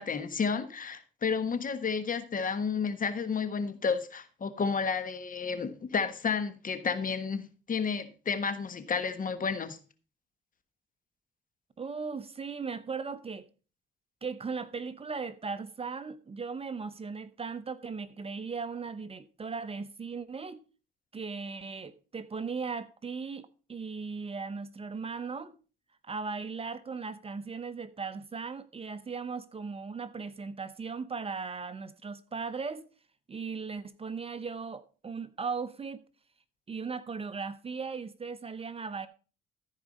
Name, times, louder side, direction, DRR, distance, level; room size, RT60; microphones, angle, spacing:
voice 1, 0.0-9.8, left 5 dB, 45° left, 1.4 m, -31 dB
voice 2, 11.8-13.5 14.2-20.6 21.1-25.5 26.0-32.9 33.3-36.0 36.7-39.1, right 5 dB, 30° right, 0.9 m, -37 dB
14.0 x 4.8 x 5.3 m
cardioid pair, 90°, 20 cm